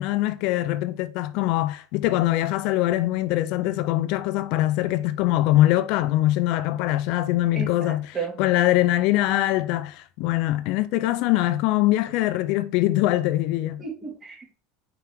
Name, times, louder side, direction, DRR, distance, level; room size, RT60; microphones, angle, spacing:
voice 1, 0.0-13.8, left 15 dB, 65° left, 0.4 m, -23 dB
voice 2, 7.5-8.4 13.8-14.5, right 5 dB, 30° right, 2.8 m, -34 dB
6.0 x 4.5 x 3.6 m
hypercardioid pair, 95°, 0 cm